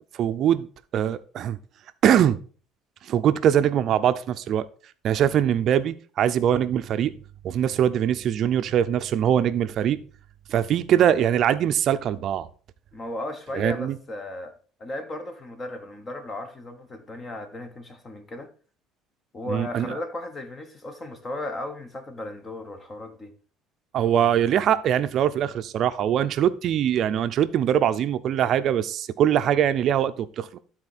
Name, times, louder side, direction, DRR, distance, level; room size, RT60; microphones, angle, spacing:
voice 1, 0.1-0.7 0.9-1.6 2.0-2.4 3.0-4.7 5.0-7.1 7.4-10.0 10.5-12.5 13.5-14.0 19.5-19.9 23.9-30.6, right 10 dB, 50° right, 0.6 m, -22 dB
voice 2, 12.9-14.5 14.8-18.5 19.3-23.3, left 1 dB, 25° left, 1.2 m, -35 dB
12.5 x 4.3 x 4.2 m
cardioid pair, 135°, 0 cm